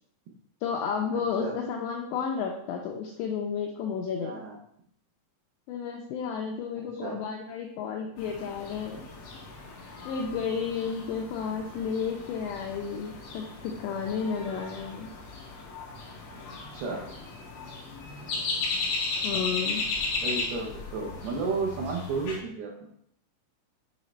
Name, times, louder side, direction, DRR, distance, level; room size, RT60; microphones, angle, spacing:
voice 1, 0.6-4.4 5.7-9.0 10.1-15.1 19.2-19.8, left 6 dB, 90° left, 1 dB, 2.4 m, -32 dB
voice 2, 4.2-4.5 6.7-7.2 16.7-17.0 20.2-22.9, right 4 dB, 90° right, -2 dB, 2.1 m, -33 dB
Sunny day outside Dia soleado exterior, 8.2-22.4, left 3 dB, 65° left, 2.0 m, -36 dB
8.6 x 3.3 x 4.2 m, 0.68 s
omnidirectional pair, 5.7 m